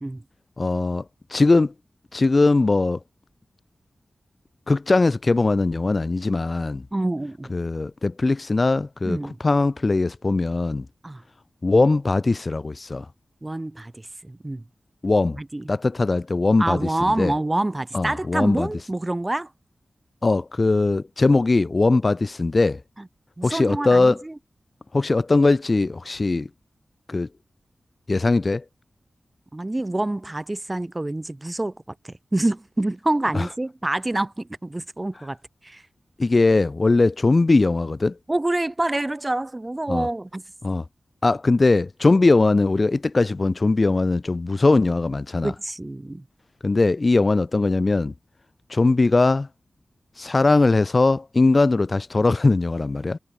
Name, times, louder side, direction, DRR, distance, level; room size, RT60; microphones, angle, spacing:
voice 1, 0.6-1.0 1.3-1.7 2.1-3.0 4.7-6.8 7.5-9.2 9.4-10.9 11.6-13.1 15.0-15.4 15.7-16.9 17.2-17.3 17.9-18.7 20.2-22.8 23.4-24.2 24.9-26.5 27.1-27.3 28.1-28.6 33.3-33.5 36.2-38.2 39.9-40.1 40.6-40.8 41.2-45.5 46.6-48.1 48.7-49.5 50.2-53.2, left 3 dB, 35° left, 0.4 m, -20 dB
voice 2, 6.9-7.5 9.0-9.4 11.0-11.2 13.4-14.6 15.4-15.7 16.6-19.5 23.4-24.4 29.5-31.7 32.0-35.4 35.6-35.8 38.3-40.4 45.4-46.2, right 2 dB, 20° right, 0.8 m, -27 dB
wide cardioid pair, 95°, 0 cm